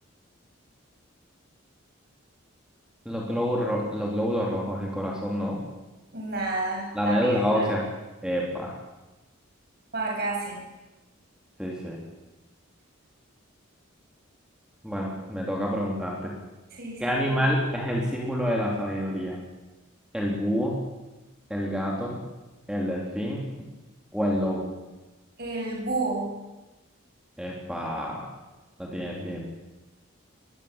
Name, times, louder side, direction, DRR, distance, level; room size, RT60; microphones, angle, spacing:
voice 1, 3.0-5.6 6.9-7.8 8.2-8.7 11.6-12.0 14.8-16.3 17.0-19.4 20.1-20.8 21.5-22.2 22.7-23.4 24.1-24.7 27.4-28.2 28.8-29.4, equal, 5° right, -2 dB, 3.3 m, -27 dB
voice 2, 6.1-7.6 9.9-10.6 16.7-17.4 25.4-26.3, right 3 dB, 50° right, -1 dB, 7.3 m, -30 dB
22.0 x 15.5 x 8.8 m, 1.1 s
head